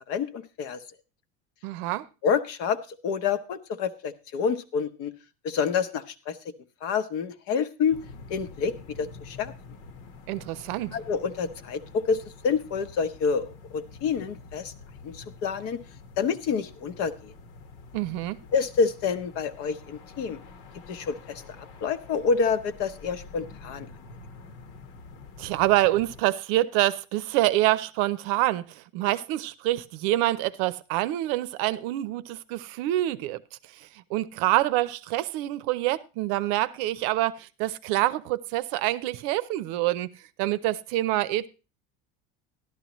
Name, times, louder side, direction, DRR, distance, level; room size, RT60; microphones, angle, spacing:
voice 1, 0.1-0.8 2.2-2.8 3.0-5.1 5.4-6.4 6.8-8.0 8.3-9.5 10.9-14.7 15.0-15.8 16.2-17.3 18.5-20.4 20.9-23.9, left 6 dB, 50° left, 1.0 m, -28 dB
voice 2, 1.6-2.1 10.3-11.0 17.9-18.4 25.4-33.4 33.7-40.1 40.4-41.5, right 16 dB, 65° right, 0.7 m, -26 dB
sound 1, 7.9-26.2, left 4 dB, 70° left, 1.5 m, -47 dB
12.5 x 12.0 x 3.1 m
cardioid pair, 160°, 31 cm